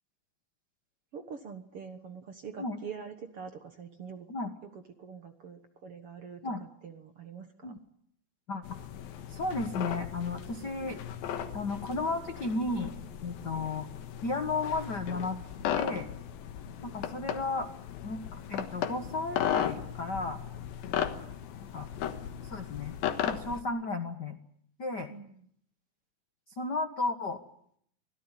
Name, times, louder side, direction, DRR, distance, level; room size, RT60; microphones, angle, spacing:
voice 1, 1.1-4.3 4.6-7.8 13.4-13.5 20.9-21.0 25.1-25.5, right 6 dB, 55° right, 7 dB, 1.8 m, -45 dB
sound 1, 8.6-23.6, left 9 dB, 80° left, 3.2 m, -36 dB
voice 2, 9.3-11.0 11.5-12.9 13.2-13.9 14.2-15.4 15.8-16.1 16.8-17.7 18.0-20.4 21.7-21.9 22.4-23.0 23.2-24.4 24.8-25.1 26.6-27.4, left 3 dB, 55° left, 6 dB, 1.2 m, -33 dB
25.0 x 17.0 x 10.0 m, 0.69 s
omnidirectional pair, 4.2 m